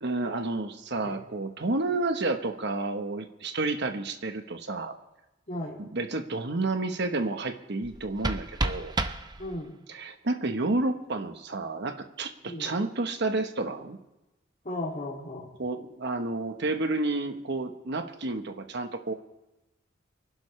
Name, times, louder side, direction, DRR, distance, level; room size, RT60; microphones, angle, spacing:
voice 1, 0.0-4.9 5.8-8.9 9.9-14.0 15.6-19.1, right 2 dB, 60° right, 6 dB, 1.1 m, -30 dB
voice 2, 5.5-5.8 9.4-9.8 12.4-12.7 14.6-15.5, left 1 dB, 40° left, -6 dB, 2.6 m, -35 dB
sound 1, 7.8-9.8, right 2 dB, 20° right, 0.7 m, -32 dB
25.0 x 11.5 x 3.3 m, 0.97 s
head